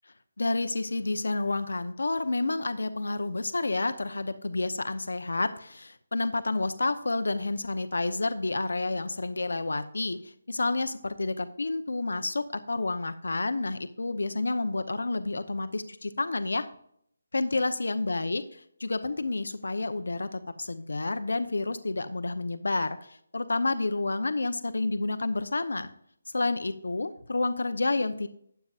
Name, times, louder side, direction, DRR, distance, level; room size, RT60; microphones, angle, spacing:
voice 1, 0.4-16.7 17.3-18.4 18.8-25.9 26.3-28.3, left 2 dB, 90° left, 10 dB, 0.9 m, -29 dB
13.0 x 9.5 x 2.5 m, 0.66 s
hypercardioid pair, 175°, 0 cm